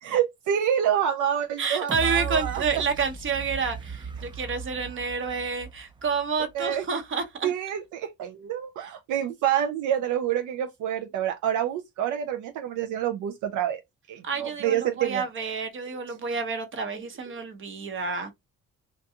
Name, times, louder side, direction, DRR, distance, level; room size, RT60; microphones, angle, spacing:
voice 1, 0.0-2.6 6.5-6.8 7.4-13.8 14.1-15.2 15.9-16.2 17.3-17.4, right 10 dB, 80° right, 0.5 m, -27 dB
voice 2, 1.6-7.5 14.2-18.3, right 5 dB, 40° right, 0.8 m, -29 dB
sound 1, 1.9-6.8 7.2-7.3, right 5 dB, 15° right, 0.3 m, -37 dB
2.5 x 2.2 x 2.7 m
cardioid pair, 90°, 30 cm